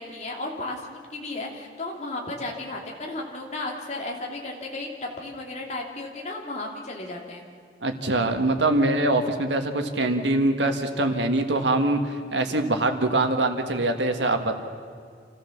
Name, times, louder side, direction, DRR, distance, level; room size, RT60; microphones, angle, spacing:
voice 1, 0.0-4.9 5.2-7.4, left 2 dB, 40° left, 0 dB, 2.8 m, -34 dB
voice 2, 7.8-14.5, right 2 dB, 85° right, 6 dB, 1.8 m, -23 dB
27.5 x 14.5 x 7.3 m, 2.2 s
head